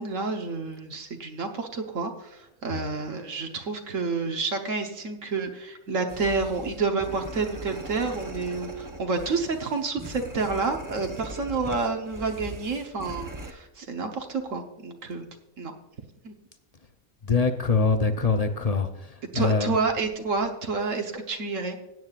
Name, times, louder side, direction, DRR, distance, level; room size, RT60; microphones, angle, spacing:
voice 1, 0.0-15.2 15.6-15.7 16.2-16.3 19.3-21.8, right 4 dB, 65° right, 4 dB, 1.4 m, -29 dB
sound 1, 6.1-13.5, right 1 dB, 15° right, 0.7 m, -40 dB
voice 2, 17.3-18.9 19.3-19.8, left 4 dB, 40° left, 7 dB, 0.5 m, -23 dB
16.5 x 9.2 x 2.4 m, 0.96 s
omnidirectional pair, 1.5 m